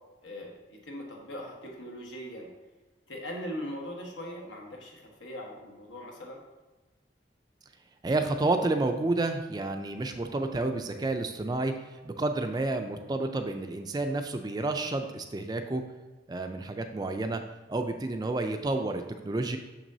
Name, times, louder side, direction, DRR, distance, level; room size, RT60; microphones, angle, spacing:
voice 1, 0.2-2.5 3.1-6.4, equal, 90° left, 0 dB, 1.3 m, -40 dB
voice 2, 8.0-15.8 16.3-17.4 17.7-19.6, right 2 dB, 20° right, 6 dB, 0.3 m, -30 dB
6.6 x 6.0 x 2.7 m, 1.2 s
head